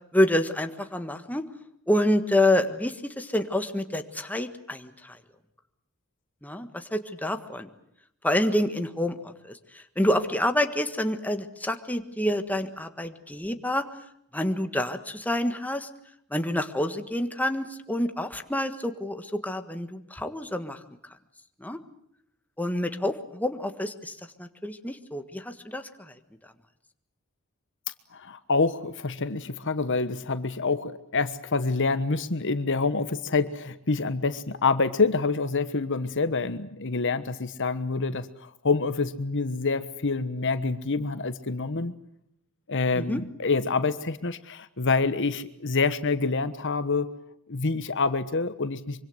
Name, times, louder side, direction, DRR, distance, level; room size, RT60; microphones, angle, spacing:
voice 1, 0.1-1.4 1.9-5.2 6.4-7.7 8.2-13.8 14.3-15.9 16.3-20.8 21.6-21.8 22.6-26.2 42.9-43.2, left 1 dB, 5° left, 7 dB, 1.6 m, -28 dB
voice 2, 28.1-41.9 42.7-47.1 47.5-49.0, left 4 dB, 55° left, 12 dB, 1.2 m, -27 dB
25.0 x 25.0 x 8.0 m, 0.76 s
head